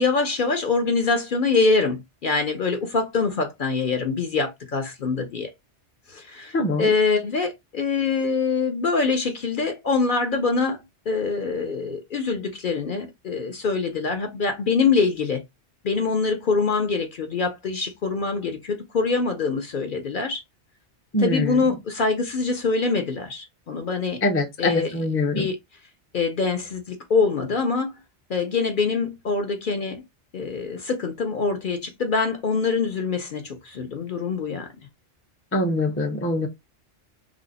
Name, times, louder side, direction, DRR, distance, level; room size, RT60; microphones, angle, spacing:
voice 1, 0.0-5.5 6.1-15.4 15.8-20.4 21.2-24.2 24.6-24.9 25.4-25.6 26.1-28.0 28.3-30.0 30.3-34.7, left 4 dB, 55° left, 0.7 m, -24 dB
voice 2, 6.5-6.9 21.1-21.7 24.2-25.5 35.5-36.5, left 1 dB, 15° left, 0.5 m, -24 dB
3.4 x 2.0 x 3.7 m
omnidirectional pair, 1.2 m